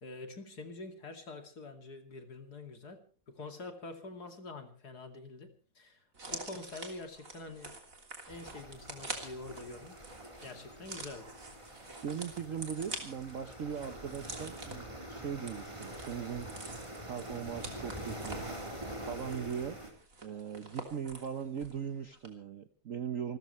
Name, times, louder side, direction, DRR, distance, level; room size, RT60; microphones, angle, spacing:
voice 1, 0.0-3.0 3.3-6.0 6.3-7.7 8.3-10.0 10.4-11.3, left 3 dB, 50° left, 6 dB, 3.0 m, -46 dB
sound 1, 6.1-21.8 22.1-22.3, right 3 dB, 40° right, 3.4 m, -47 dB
sound 2, 8.3-19.9, right 1 dB, 15° right, 3.9 m, -45 dB
voice 2, 12.0-16.5 17.0-18.4 19.0-19.8 20.2-23.4, right 7 dB, 55° right, 10 dB, 0.9 m, -39 dB
28.5 x 14.0 x 3.2 m, 0.40 s
omnidirectional pair, 2.3 m